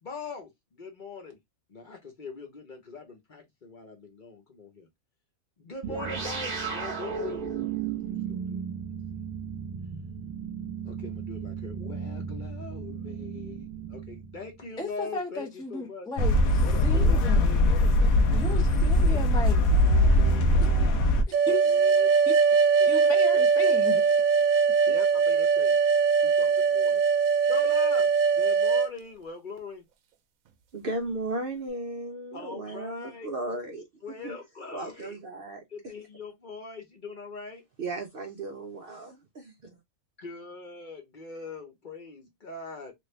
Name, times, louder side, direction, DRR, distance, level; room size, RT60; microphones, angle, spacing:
voice 1, 0.0-1.4 1.7-4.9 5.6-7.4 8.2-8.6 10.8-16.1 16.6-18.1 19.1-19.2 19.6-21.1 21.6-22.1 22.8-22.9 24.9-25.8 26.2-27.0 27.4-29.8 32.3-33.3 34.0-35.2 35.7-37.6 40.2-42.9, left 4 dB, 40° left, 0.8 m, -41 dB
sound 1, 5.8-14.6, right 6 dB, 35° right, 1.1 m, -35 dB
voice 2, 14.8-17.6 18.3-19.6 21.5-21.6 22.3-22.4 22.9-24.0, left 2 dB, 5° left, 0.3 m, -35 dB
sound 2, 16.2-21.2, left 1 dB, 90° left, 1.1 m, -21 dB
sound 3, 21.3-28.9, right 5 dB, 75° right, 1.0 m, -22 dB
voice 3, 30.7-33.9 34.2-34.4 34.7-35.6 37.8-39.5, right 2 dB, 55° right, 0.6 m, -35 dB
3.1 x 2.5 x 3.1 m
omnidirectional pair, 1.4 m